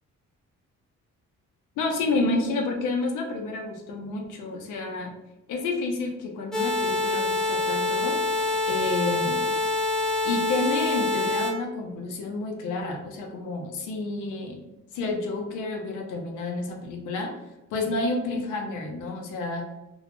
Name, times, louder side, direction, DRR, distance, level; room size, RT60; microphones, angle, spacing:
voice 1, 1.8-5.1 5.5-8.2 8.6-9.5 10.2-14.6 14.9-17.3 17.7-19.7, left 3 dB, 85° left, 2 dB, 0.6 m, -30 dB
sound 1, 6.5-11.5, left 2 dB, ahead, 0.4 m, -26 dB
2.2 x 2.0 x 2.9 m, 0.96 s
cardioid pair, 90°, 30 cm